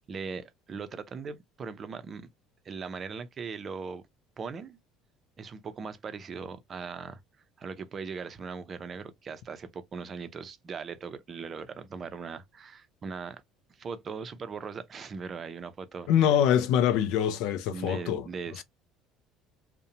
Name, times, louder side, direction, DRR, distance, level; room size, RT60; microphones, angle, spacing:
voice 1, 0.0-2.2 2.6-4.0 4.4-4.8 5.4-7.2 7.6-13.4 13.7-16.1 17.7-18.6, right 5 dB, 40° right, 0.5 m, -39 dB
voice 2, 16.1-18.2, left 9 dB, 75° left, 0.4 m, -24 dB
2.6 x 2.1 x 2.7 m
supercardioid pair, 90°, 0 cm